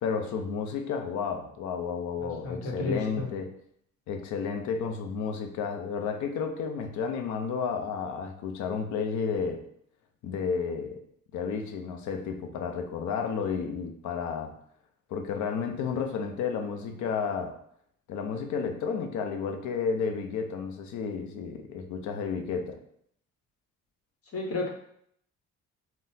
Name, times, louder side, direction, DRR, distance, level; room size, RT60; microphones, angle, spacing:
voice 1, 0.0-3.5 4.1-9.6 10.2-11.0 11.3-14.6 15.1-17.6 18.1-22.8, left 6 dB, 70° left, 5 dB, 0.6 m, -32 dB
voice 2, 2.2-3.3 24.3-24.7, left 2 dB, 50° left, -1 dB, 1.0 m, -32 dB
3.9 x 2.1 x 2.6 m, 0.68 s
supercardioid pair, 80°, 30 cm